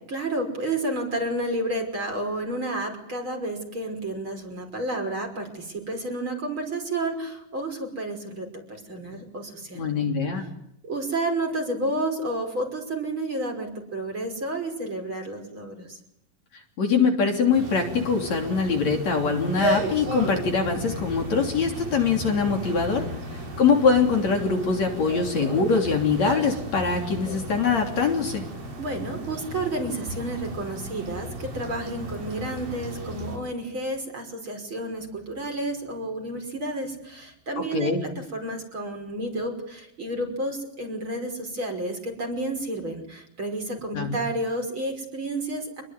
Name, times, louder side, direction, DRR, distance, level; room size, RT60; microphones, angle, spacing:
voice 1, 0.1-9.9 10.8-16.0 28.8-45.8, right 1 dB, 35° right, 4 dB, 6.2 m, -31 dB
voice 2, 9.7-10.4 16.8-28.4 37.6-38.1 43.9-44.2, left 5 dB, 50° left, 3 dB, 4.3 m, -23 dB
sound 1, 17.5-33.4, right 1 dB, 75° right, 7.4 m, -34 dB
28.5 x 21.5 x 9.7 m, 0.78 s
omnidirectional pair, 4.1 m